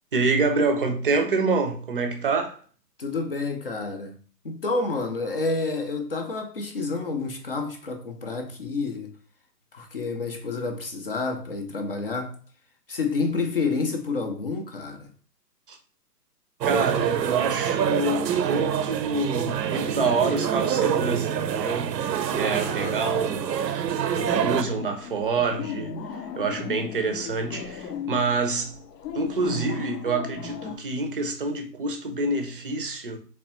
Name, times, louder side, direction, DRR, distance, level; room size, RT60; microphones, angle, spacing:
voice 1, 0.1-2.6 15.7-15.8 16.6-22.0 22.4-23.5 24.1-28.8 29.1-33.2, right 3 dB, 35° right, 0.5 m, -27 dB
voice 2, 3.0-4.2 4.4-9.1 9.7-12.4 12.9-15.1 22.3-23.0, left 3 dB, 40° left, 0.4 m, -29 dB
sound 1, 16.6-24.6, right 9 dB, 85° right, 0.6 m, -26 dB
sound 2, 24.3-30.8, left 6 dB, 75° left, 0.7 m, -36 dB
3.5 x 3.1 x 2.9 m
hypercardioid pair, 150°, 49 cm